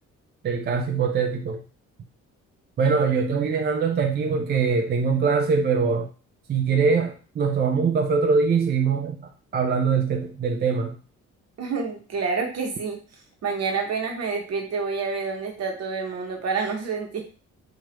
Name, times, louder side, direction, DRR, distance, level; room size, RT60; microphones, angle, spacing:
voice 1, 0.4-1.6 2.8-6.1 6.5-11.0, right 5 dB, 35° right, 3 dB, 0.4 m, -23 dB
voice 2, 11.6-13.0 13.4-17.2, right 5 dB, 60° right, 2 dB, 1.0 m, -28 dB
2.9 x 2.4 x 3.1 m, 0.37 s
cardioid pair, 90°, 30 cm